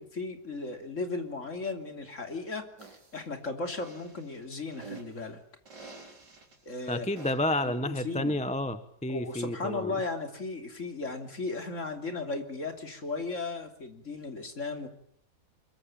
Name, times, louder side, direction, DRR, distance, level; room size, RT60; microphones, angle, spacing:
voice 1, 0.0-5.4 6.7-7.1 7.6-8.4 9.1-14.9, left 3 dB, 45° left, 5 dB, 3.4 m, -36 dB
sound 1, 2.8-3.2 3.7-5.2 5.7-6.6 7.2-7.6, right 3 dB, 70° right, 4.8 m, -48 dB
voice 2, 6.9-10.0, left 1 dB, 5° left, 10 dB, 1.1 m, -30 dB
25.0 x 22.5 x 8.9 m, 0.65 s
omnidirectional pair, 1.9 m